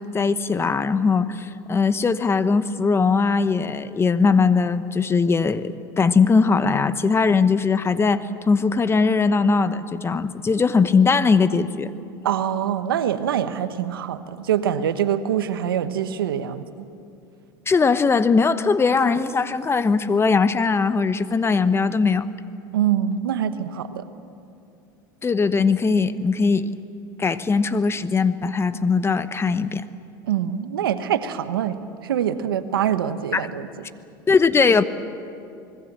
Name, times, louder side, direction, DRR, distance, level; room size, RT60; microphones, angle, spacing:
voice 1, 0.0-11.9 17.7-22.3 25.2-26.7 27.2-29.8 33.3-33.5 34.3-34.8, left 4 dB, 20° left, 12 dB, 1.0 m, -20 dB
voice 2, 12.2-16.7 22.7-24.0 30.3-31.8 32.0-33.7, right 9 dB, 90° right, 11 dB, 1.2 m, -24 dB
25.5 x 20.5 x 7.5 m, 2.6 s
hypercardioid pair, 90°, 12 cm